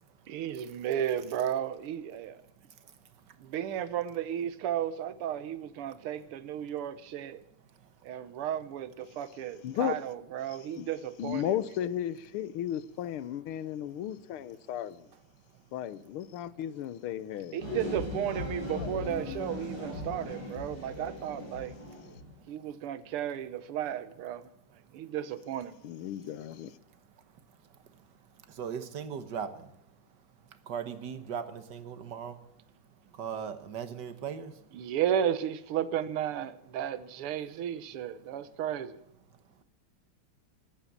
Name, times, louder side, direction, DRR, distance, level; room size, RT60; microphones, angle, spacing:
voice 1, 0.3-2.4 3.4-7.4 8.0-11.6 17.5-21.8 22.5-24.5 24.9-25.8 34.7-39.0, right 10 dB, 85° right, 1.8 m, -34 dB
voice 2, 9.6-10.0 10.5-10.9 11.2-15.1 15.7-17.6 18.7-19.6 21.3-21.5 25.8-26.8, left 11 dB, 85° left, 1.7 m, -35 dB
sound 1, 17.6-22.3, left 1 dB, 50° left, 8.9 m, -39 dB
voice 3, 28.6-29.7 30.7-32.3 33.2-34.5, right 7 dB, 55° right, 1.7 m, -38 dB
20.0 x 9.1 x 7.3 m
omnidirectional pair, 2.4 m